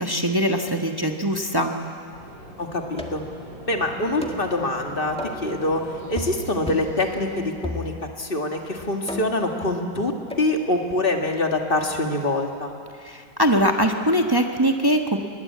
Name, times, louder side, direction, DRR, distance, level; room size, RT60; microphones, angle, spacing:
voice 1, 0.0-1.7 13.0-15.2, equal, 15° right, 3 dB, 1.0 m, -22 dB
sound 1, 2.1-7.5, equal, 85° right, 7.2 m, -40 dB
voice 2, 2.6-3.2 3.7-5.8 6.1-7.9 8.2-10.1 10.4-12.7, left 2 dB, 30° left, 3 dB, 2.0 m, -25 dB
sound 2, 3.0-3.4 4.2-4.5 5.2-5.5 6.2-6.4 6.7-7.0 7.6-8.2 9.1-9.5 10.3-10.5, left 1 dB, 5° left, 1.5 m, -34 dB
22.5 x 19.5 x 8.5 m, 2.3 s
omnidirectional pair, 2.0 m